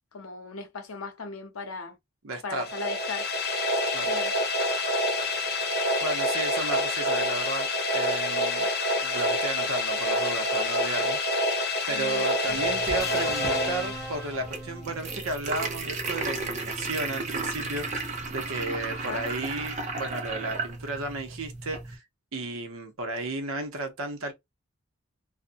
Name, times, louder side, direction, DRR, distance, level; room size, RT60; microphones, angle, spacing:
voice 1, 0.1-2.0 2.4-3.3 4.0-4.3 11.9-12.6 18.9-19.2, left 4 dB, 85° left, 0.7 m, -37 dB
voice 2, 2.2-2.6 3.9-4.1 6.0-8.7 9.0-11.6 11.9-22.0 22.3-24.3, right 2 dB, 70° right, 0.8 m, -34 dB
sound 1, 2.6-14.5, left 1 dB, 50° left, 0.7 m, -27 dB
sound 2, 12.5-22.0, right 3 dB, 35° right, 0.6 m, -34 dB
sound 3, 13.0-15.3 16.6-16.8, equal, 15° left, 0.5 m, -38 dB
2.5 x 2.1 x 2.6 m
head